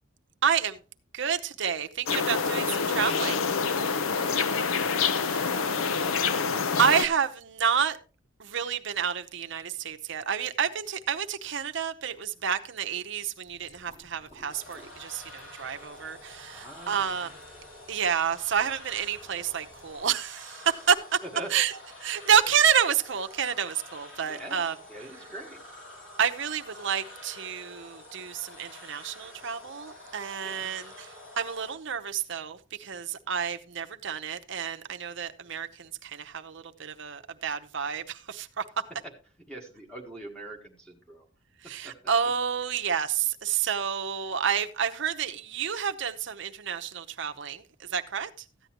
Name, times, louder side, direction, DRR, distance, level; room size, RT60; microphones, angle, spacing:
voice 1, 0.4-0.8 1.1-3.4 5.3-5.5 6.8-8.0 8.4-17.3 17.9-21.2 21.5-21.7 22.0-24.7 26.2-31.1 31.4-38.6 41.7-48.3, right 7 dB, 60° right, 0.8 m, -29 dB
sound 1, 2.1-7.0, left 5 dB, 85° left, 0.6 m, -27 dB
voice 2, 4.2-4.7 5.3-5.8 16.5-17.4 21.2-21.5 24.2-25.6 30.4-30.7 39.5-41.3 41.8-41.9, right 1 dB, 5° left, 1.4 m, -43 dB
sound 2, 13.4-20.1, equal, 35° left, 4.3 m, -57 dB
sound 3, 14.5-31.7, left 1 dB, 70° left, 6.3 m, -48 dB
14.0 x 9.3 x 2.9 m
head